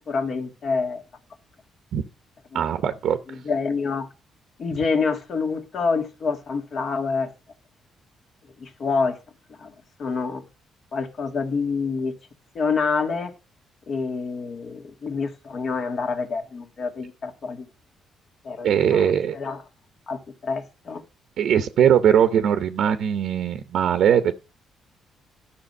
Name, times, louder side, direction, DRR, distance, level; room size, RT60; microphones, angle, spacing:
voice 1, 0.1-1.0 2.5-2.7 3.3-4.1 4.6-7.3 8.6-9.2 9.6-9.7 10.0-10.4 10.9-12.2 12.6-13.3 13.9-17.7 18.4-19.0 19.3-19.6 20.1-21.0, left 4 dB, 55° left, 1.8 m, -27 dB
voice 2, 2.5-3.2 18.6-19.3 21.4-24.3, right 9 dB, 75° right, 0.7 m, -20 dB
11.5 x 5.9 x 5.3 m
cardioid pair, 90°, 0 cm